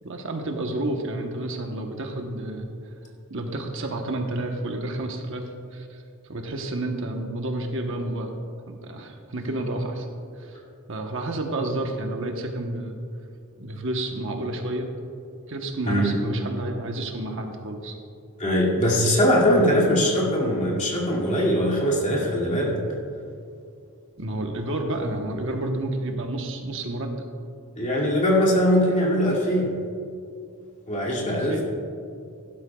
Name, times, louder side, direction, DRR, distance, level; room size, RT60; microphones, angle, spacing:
voice 1, 0.0-2.7 3.3-6.0 6.3-8.3 8.7-10.1 10.4-10.6 10.9-12.9 13.6-14.9 15.5-17.9 24.2-27.1 31.3-31.6, right 1 dB, 60° right, 3 dB, 1.1 m, -30 dB
voice 2, 15.8-16.2 18.4-22.8 27.8-29.7 30.9-31.6, equal, 35° left, -4 dB, 2.4 m, -21 dB
16.5 x 12.0 x 2.3 m, 2.5 s
head